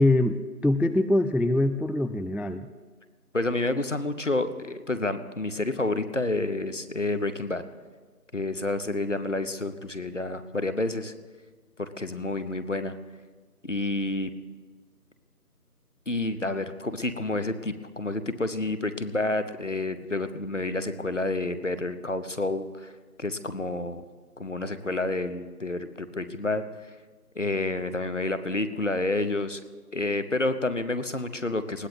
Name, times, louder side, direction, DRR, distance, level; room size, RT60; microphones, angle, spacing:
voice 1, 0.0-2.7, left 1 dB, 5° right, 12 dB, 0.3 m, -23 dB
voice 2, 3.3-7.6 8.3-11.1 11.8-13.0 13.6-14.3 16.1-22.9 23.2-24.0 24.4-26.6 27.4-29.6 29.9-31.9, left 2 dB, 50° left, 11 dB, 0.9 m, -29 dB
20.0 x 16.5 x 3.1 m, 1.4 s
figure-of-eight pair, 175°, 47 cm